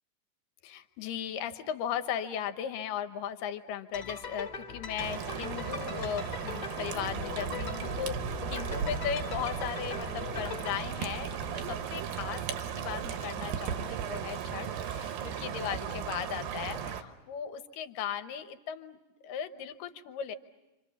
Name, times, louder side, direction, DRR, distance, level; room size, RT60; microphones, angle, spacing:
voice 1, 0.6-20.4, left 9 dB, 80° left, 9 dB, 2.7 m, -37 dB
sound 1, 3.9-10.8, left 5 dB, 40° left, 1.9 m, -41 dB
sound 2, 5.0-17.0, right 7 dB, 85° right, 3.1 m, -36 dB
28.5 x 26.5 x 7.1 m, 1.0 s
omnidirectional pair, 4.0 m